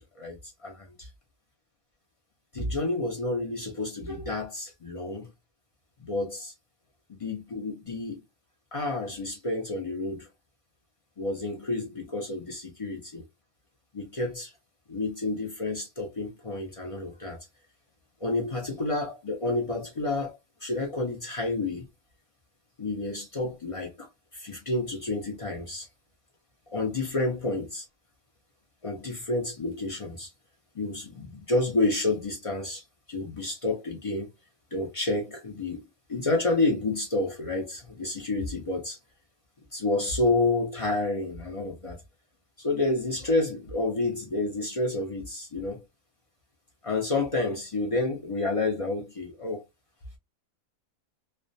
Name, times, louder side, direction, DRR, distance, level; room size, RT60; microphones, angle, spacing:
voice 1, 0.0-1.0 2.5-5.3 6.0-6.5 7.1-8.2 8.7-10.3 11.2-13.2 13.9-14.5 14.9-17.4 18.2-21.8 22.8-24.1 24.3-25.9 26.7-27.8 28.8-30.3 30.7-32.8 33.1-34.3 34.7-35.8 36.1-39.0 39.7-42.0 42.6-45.8 46.8-49.6, left 2 dB, 55° left, 0.3 m, -29 dB
2.3 x 2.2 x 2.5 m
omnidirectional pair, 1.5 m